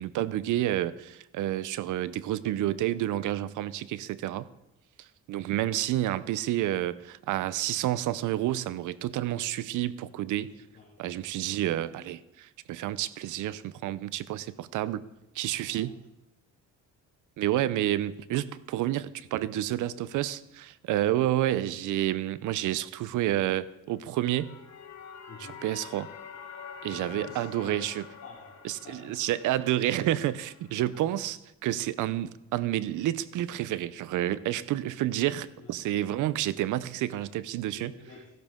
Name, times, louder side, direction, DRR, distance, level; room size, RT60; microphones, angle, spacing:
voice 1, 0.0-4.5 5.0-10.5 11.0-15.0 15.3-16.0 17.4-24.5 25.4-26.1 26.8-28.0 28.6-37.9, right 13 dB, 80° right, 17 dB, 0.6 m, -29 dB
voice 2, 10.6-11.0 15.7-15.9 21.1-21.3 25.3-25.6 26.9-27.8 28.2-28.6 28.8-29.2 35.6-35.8 37.7-38.3, left 4 dB, 50° left, -2 dB, 2.0 m, -49 dB
sound 1, 23.9-30.9, left 6 dB, 65° left, 1.5 m, -47 dB
14.0 x 12.0 x 3.7 m, 0.92 s
cardioid pair, 90°, 30 cm